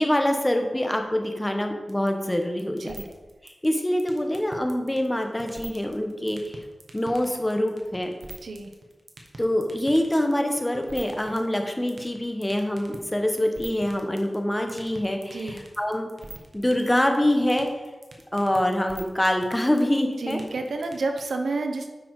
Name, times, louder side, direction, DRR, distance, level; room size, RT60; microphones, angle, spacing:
voice 1, 0.0-2.9 3.6-6.6 6.9-8.1 9.4-16.1 16.5-17.7 18.3-20.4, left 1 dB, 15° left, 4 dB, 1.2 m, -25 dB
sound 1, 1.9-21.2, right 3 dB, 60° right, 1.5 m, -43 dB
voice 2, 15.3-15.6 20.2-21.9, right 3 dB, 90° right, 5 dB, 0.9 m, -30 dB
9.5 x 5.9 x 4.8 m, 1.2 s
wide cardioid pair, 85°, 0 cm